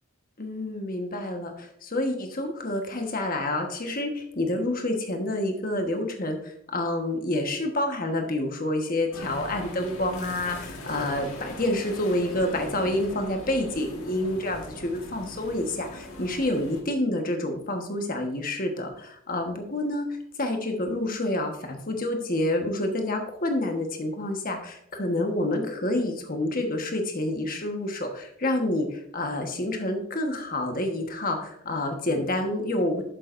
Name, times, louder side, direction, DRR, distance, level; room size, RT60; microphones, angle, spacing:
voice 1, 0.4-33.0, left 1 dB, 40° left, 4 dB, 1.3 m, -28 dB
sound 1, 9.1-16.8, left 2 dB, 80° left, 1.7 m, -40 dB
11.5 x 7.5 x 2.6 m, 0.71 s
head